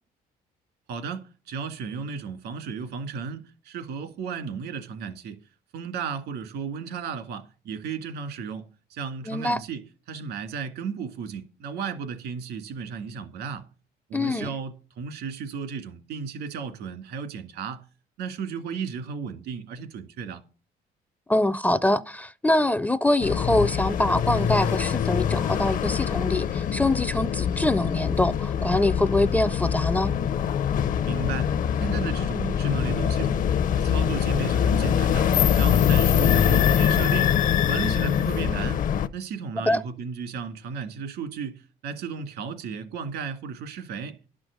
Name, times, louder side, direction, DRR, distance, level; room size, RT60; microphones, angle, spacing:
voice 1, 0.9-5.4 5.7-8.6 8.9-13.6 14.1-17.8 18.2-20.4 31.1-31.5 31.8-33.5 33.7-37.4 37.7-38.8 39.1-44.2, right 6 dB, 80° right, 2.2 m, -34 dB
voice 2, 9.3-9.6 14.1-14.5 21.3-30.1 39.7-39.8, left 1 dB, 10° left, 0.4 m, -24 dB
sound 1, 23.2-39.1, left 8 dB, 50° left, 0.6 m, -23 dB
11.5 x 6.2 x 6.5 m
cardioid pair, 110°, 17 cm